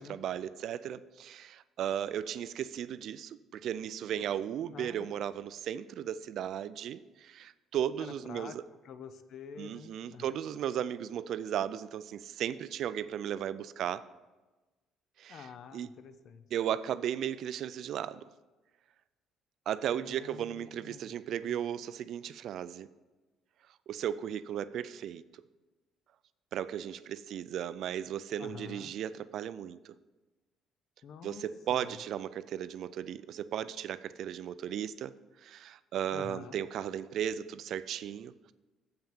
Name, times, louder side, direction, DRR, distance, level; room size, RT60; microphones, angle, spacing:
voice 1, 0.0-8.6 9.6-14.0 15.2-15.5 15.7-15.9 16.5-18.3 19.7-22.9 23.9-25.2 26.5-29.9 31.2-35.1 35.4-38.5, right 10 dB, 60° right, 15 dB, 0.3 m, -36 dB
voice 2, 4.7-5.1 8.0-8.6 8.8-10.4 15.3-16.5 19.9-21.1 21.4-21.6 28.4-28.9 31.0-32.0 36.1-36.6, left 6 dB, 55° left, 11 dB, 0.6 m, -48 dB
7.7 x 5.7 x 7.1 m, 1.2 s
cardioid pair, 145°, 0 cm